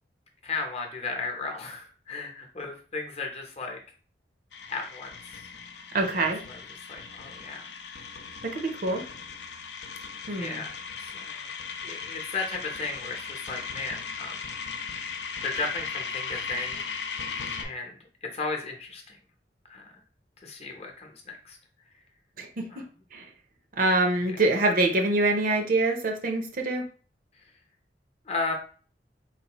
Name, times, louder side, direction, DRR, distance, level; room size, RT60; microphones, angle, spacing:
voice 1, 0.4-3.8 4.7-5.5 6.2-7.7 8.9-9.1 10.4-11.5 11.8-14.5 15.4-17.2 17.6-19.2 19.7-20.0 20.4-21.6 22.7-22.8 24.2-24.4 28.3-28.5, left 3 dB, 35° left, 2 dB, 0.8 m, -35 dB
sound 1, 4.5-17.6, left 5 dB, 75° left, 0.6 m, -37 dB
voice 2, 5.9-6.4 8.4-9.0 10.3-10.6 22.4-22.9 23.1-23.3 23.8-26.9, right 2 dB, 55° right, 3 dB, 0.7 m, -25 dB
4.2 x 2.5 x 3.0 m, 0.40 s
head